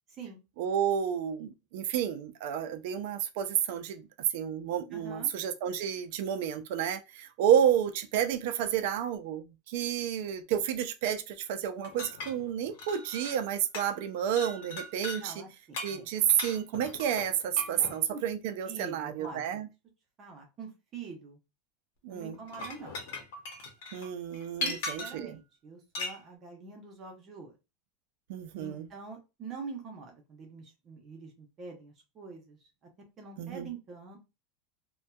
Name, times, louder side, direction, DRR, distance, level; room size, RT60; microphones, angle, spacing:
voice 1, 0.6-4.1 4.3-15.4 15.8-19.7 22.0-22.4 23.9-25.4 28.3-28.9 33.4-33.7, right 9 dB, 65° right, 0.4 m, -30 dB
voice 2, 4.9-5.3 15.2-16.0 17.7-18.2 18.7-19.6 20.2-21.4 22.1-23.0 24.6-27.5 28.6-32.6 33.2-34.2, right 4 dB, 30° right, 0.7 m, -45 dB
sound 1, 11.8-13.5 13.7-14.1 14.4-15.2 15.7-18.0 19.2-19.3 22.3-25.3 25.9-26.2, left 2 dB, 75° left, 0.8 m, -39 dB
2.6 x 2.2 x 2.2 m
supercardioid pair, 145°, 0 cm